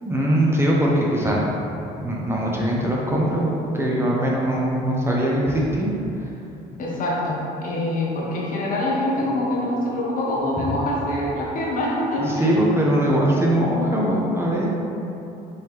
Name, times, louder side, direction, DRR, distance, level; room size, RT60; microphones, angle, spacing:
voice 1, 0.0-1.4 2.0-5.9 12.2-14.7, right 1 dB, 15° right, -4 dB, 0.6 m, -21 dB
voice 2, 6.8-12.6, left 1 dB, 55° left, -4 dB, 1.0 m, -25 dB
4.3 x 3.3 x 3.2 m, 2.9 s
cardioid pair, 110°, 17 cm